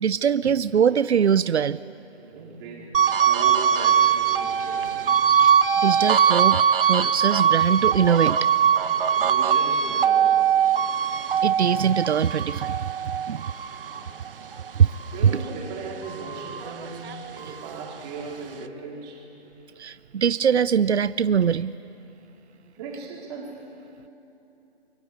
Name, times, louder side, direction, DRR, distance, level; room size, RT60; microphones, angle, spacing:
voice 1, 0.0-1.8 5.4-5.6 5.8-8.4 11.4-12.9 13.3-13.4 14.8-14.9 19.8-21.7, right 7 dB, 85° right, 16 dB, 0.6 m, -22 dB
voice 2, 2.2-2.9 3.3-5.1 8.8-10.5 15.1-19.2 22.7-23.7, right 4 dB, 25° right, -2 dB, 4.5 m, -37 dB
sound 1, 2.9-15.6 16.0-17.7, right 8 dB, 55° right, 1.2 m, -22 dB
29.0 x 23.5 x 8.7 m, 3.0 s
hypercardioid pair, 155°, 33 cm